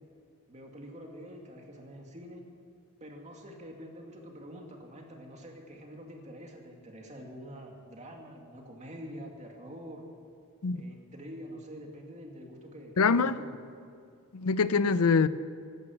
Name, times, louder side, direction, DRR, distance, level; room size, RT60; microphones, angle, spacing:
voice 1, 0.5-2.4 3.0-10.1 10.7-13.5, equal, 35° right, 1 dB, 2.4 m, -46 dB
voice 2, 13.0-13.4 14.3-15.3, left 5 dB, 90° left, 15 dB, 0.6 m, -24 dB
15.5 x 12.0 x 7.6 m, 2.4 s
head